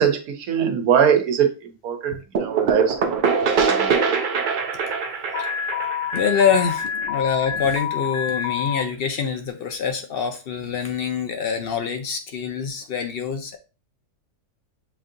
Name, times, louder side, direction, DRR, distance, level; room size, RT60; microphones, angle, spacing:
voice 1, 0.0-3.9, right 8 dB, 90° right, 5 dB, 1.2 m, -22 dB
sound 1, 2.3-7.9, right 5 dB, 75° right, 0.4 m, -24 dB
Alarm, 5.3-8.8, left 8 dB, 90° left, 1.1 m, -27 dB
voice 2, 6.1-13.6, left 6 dB, 65° left, 6 dB, 0.6 m, -25 dB
7.1 x 2.7 x 2.5 m, 0.32 s
omnidirectional pair, 1.5 m